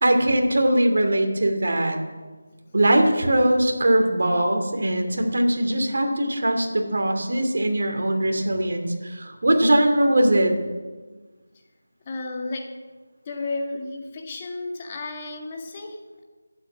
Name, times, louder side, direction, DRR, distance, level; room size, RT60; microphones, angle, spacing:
voice 1, 0.0-2.0 2.7-10.5, right 1 dB, 60° right, 3 dB, 2.6 m, -21 dB
voice 2, 12.0-12.7 13.2-16.2, left 2 dB, 20° left, 2 dB, 1.7 m, -33 dB
12.0 x 8.7 x 9.3 m, 1.3 s
figure-of-eight pair, 175°, 0 cm